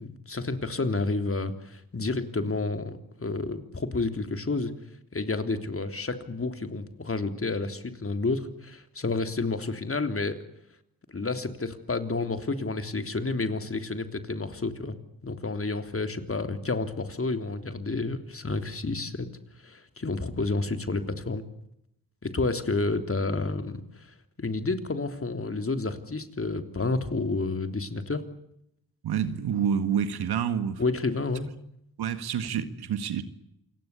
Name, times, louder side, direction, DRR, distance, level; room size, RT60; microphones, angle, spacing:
voice 1, 0.0-4.7 5.1-10.4 11.1-15.0 15.2-19.3 19.6-21.4 22.2-24.1 24.4-28.2 30.8-31.5, left 3 dB, 35° left, 3.4 m, -30 dB
voice 2, 29.0-30.8 32.0-33.2, right 8 dB, 80° right, 2.0 m, -28 dB
28.0 x 19.0 x 8.5 m
supercardioid pair, 50°, 38 cm